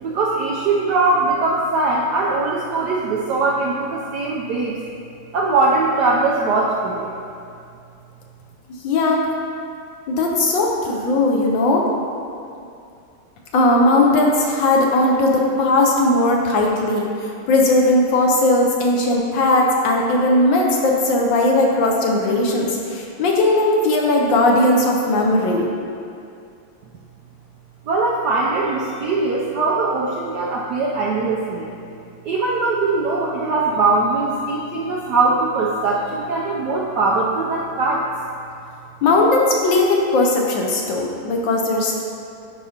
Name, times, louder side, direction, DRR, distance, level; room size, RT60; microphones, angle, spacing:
voice 1, 0.0-4.8 5.3-7.1 27.9-31.7 32.2-38.1, right 3 dB, 75° right, -3 dB, 0.9 m, -21 dB
voice 2, 8.8-9.2 10.1-11.9 13.5-25.7 39.0-42.0, left 2 dB, 70° left, 0 dB, 1.2 m, -18 dB
11.0 x 5.0 x 2.8 m, 2.5 s
omnidirectional pair, 2.4 m